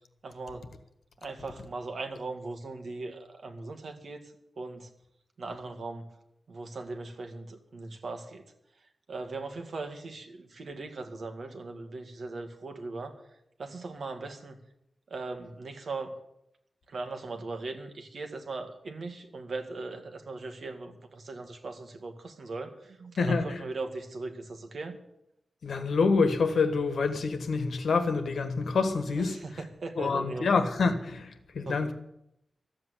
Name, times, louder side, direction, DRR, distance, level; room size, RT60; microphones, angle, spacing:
voice 1, 0.2-0.7 1.2-4.9 5.4-6.2 6.5-8.4 9.1-13.1 13.6-14.6 15.1-16.1 16.9-25.0 29.3-30.5 31.7-31.9, right 3 dB, 60° right, 1.8 m, -39 dB
voice 2, 23.2-23.6 25.6-29.4 30.0-31.9, left 4 dB, 85° left, 1.5 m, -27 dB
13.5 x 8.0 x 10.0 m
wide cardioid pair, 155°, 0 cm